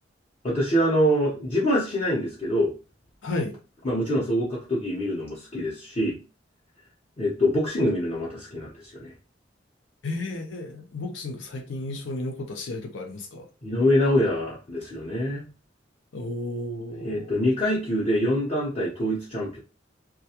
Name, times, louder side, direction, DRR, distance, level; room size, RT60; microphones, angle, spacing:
voice 1, 0.4-2.7 3.8-6.2 7.2-9.1 13.6-15.4 16.9-19.6, equal, 30° left, 0.7 m, -25 dB
voice 2, 3.2-3.5 10.0-13.5 16.1-17.3, left 2 dB, 85° left, 0.6 m, -33 dB
2.3 x 2.2 x 2.8 m
head